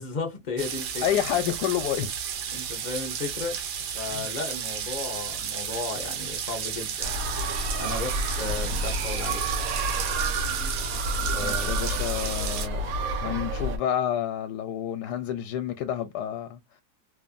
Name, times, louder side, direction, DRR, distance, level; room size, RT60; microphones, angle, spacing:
voice 1, 0.0-1.0 2.5-3.6 3.9-7.1 7.8-9.4 11.3-11.9 13.2-13.4, left 4 dB, 40° left, 0.7 m, -34 dB
sound 1, 0.6-12.7, right 8 dB, 80° right, 1.3 m, -33 dB
voice 2, 1.0-2.2 2.5-2.7 4.1-4.3 11.4-12.9 13.2-16.6, left 10 dB, 80° left, 1.1 m, -29 dB
sound 2, 7.0-13.8, right 2 dB, 65° right, 1.1 m, -29 dB
3.1 x 2.5 x 2.2 m
omnidirectional pair, 1.8 m